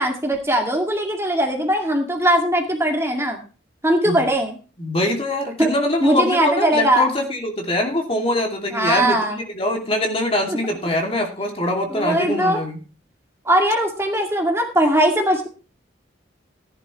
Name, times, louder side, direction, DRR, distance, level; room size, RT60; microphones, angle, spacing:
voice 1, 0.0-3.4 3.8-4.6 5.6-5.7 6.0-7.0 8.7-9.4 10.5-10.6 11.9-12.6 13.5-15.5, right 1 dB, 15° right, 1 dB, 2.1 m, -20 dB
voice 2, 4.8-12.8, left 1 dB, 30° left, 2 dB, 2.5 m, -23 dB
16.0 x 11.0 x 3.1 m, 0.35 s
head